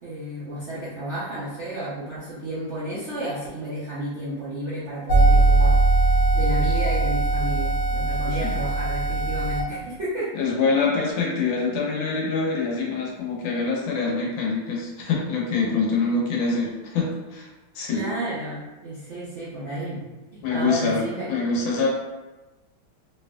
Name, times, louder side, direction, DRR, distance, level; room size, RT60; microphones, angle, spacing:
voice 1, 0.0-5.8 6.3-10.3 12.8-13.0 17.9-20.0 20.3-21.3, right 1 dB, 80° right, -10 dB, 0.6 m, -32 dB
sound 1, 5.1-9.6, right 2 dB, 50° left, 1.0 m, -20 dB
voice 2, 8.1-8.6 10.3-17.5 17.7-18.1 20.4-21.9, left 4 dB, 75° left, -2 dB, 1.4 m, -25 dB
3.2 x 2.9 x 2.2 m, 1.1 s
omnidirectional pair, 2.2 m